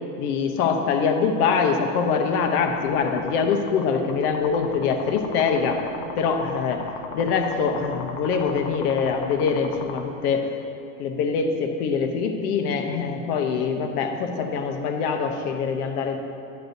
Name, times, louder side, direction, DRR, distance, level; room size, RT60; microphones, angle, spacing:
voice 1, 0.2-5.8 6.2-6.8 7.1-10.5 11.0-16.2, left 5 dB, 85° left, 5 dB, 1.0 m, -24 dB
sound 1, 1.9-10.0, left 6 dB, 55° left, 0.9 m, -37 dB
10.5 x 9.9 x 2.7 m, 2.6 s
supercardioid pair, 135°, 44 cm